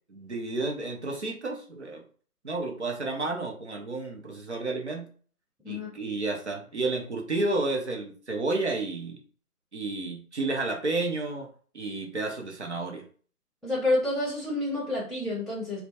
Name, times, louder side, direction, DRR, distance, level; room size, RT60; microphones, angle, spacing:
voice 1, 0.1-2.0 2.4-5.1 5.7-9.2 9.7-11.5 11.7-13.0, right 2 dB, 50° right, 2 dB, 0.6 m, -31 dB
voice 2, 13.6-15.8, left 2 dB, ahead, -9 dB, 0.5 m, -28 dB
2.2 x 2.1 x 2.8 m, 0.43 s
figure-of-eight pair, 170°, 45 cm